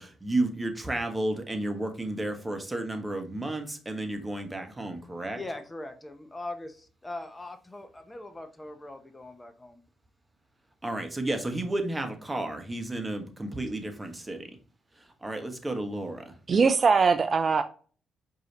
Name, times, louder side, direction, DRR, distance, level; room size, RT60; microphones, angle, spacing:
voice 1, 0.0-5.4 10.8-14.5 15.2-16.3, right 2 dB, 20° right, 1.1 m, -32 dB
voice 2, 5.3-9.8, left 2 dB, 20° left, 0.8 m, -41 dB
voice 3, 16.5-17.6, right 5 dB, 45° right, 0.4 m, -21 dB
4.7 x 2.8 x 3.0 m
hypercardioid pair, 45°, 0 cm